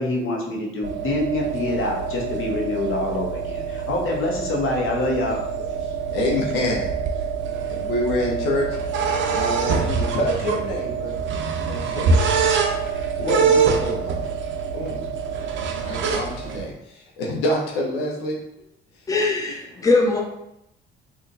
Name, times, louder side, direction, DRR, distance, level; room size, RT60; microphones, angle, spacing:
voice 1, 0.0-5.5, left 2 dB, 45° left, -1 dB, 0.9 m, -26 dB
sound 1, 0.8-16.7, right 5 dB, 40° right, 0.5 m, -25 dB
voice 2, 5.8-6.9 7.7-8.8 9.3-11.1 11.6-12.4 13.2-14.3 14.7-15.1 15.8-18.4 18.9-19.0, left 1 dB, 75° left, -1 dB, 0.6 m, -27 dB
voice 3, 19.1-20.2, left 3 dB, 10° left, 1 dB, 0.5 m, -20 dB
3.6 x 2.2 x 2.6 m, 0.83 s
figure-of-eight pair, 50°, 30 cm